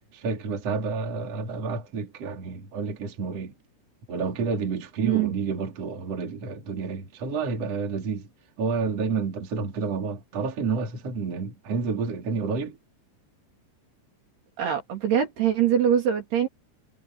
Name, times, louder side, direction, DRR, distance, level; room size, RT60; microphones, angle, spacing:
voice 1, 0.1-3.5 4.1-8.3 8.6-12.8, right 4 dB, 35° right, 4.1 m, -29 dB
voice 2, 5.0-5.3 14.6-16.5, right 9 dB, 55° right, 5.1 m, -23 dB
omnidirectional pair, 5.8 m